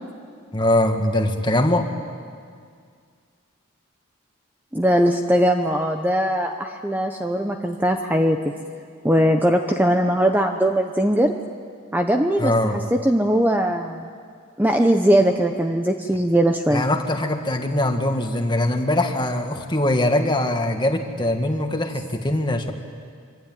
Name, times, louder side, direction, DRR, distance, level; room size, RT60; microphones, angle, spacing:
voice 1, 0.5-1.9 12.4-12.8 16.7-22.7, left 1 dB, 20° left, 4 dB, 1.9 m, -22 dB
voice 2, 4.7-8.5 9.0-11.3 11.9-14.1 14.6-16.8, equal, 10° right, 4 dB, 0.9 m, -20 dB
25.0 x 25.0 x 9.4 m, 2.1 s
head